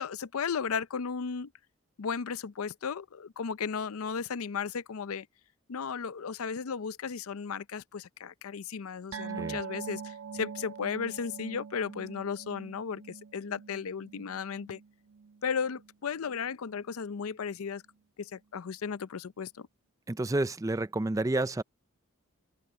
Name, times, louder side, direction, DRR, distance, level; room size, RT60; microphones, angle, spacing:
voice 1, 0.0-1.5 2.0-5.3 5.7-14.8 15.4-17.8 18.2-19.7, left 6 dB, 85° left, 0.5 m, -35 dB
sound 1, 9.1-15.9 16.2-16.4 16.8-16.9, right 6 dB, 80° right, 1.2 m, -43 dB
voice 2, 20.1-21.6, right 2 dB, 15° right, 0.4 m, -30 dB
open air
head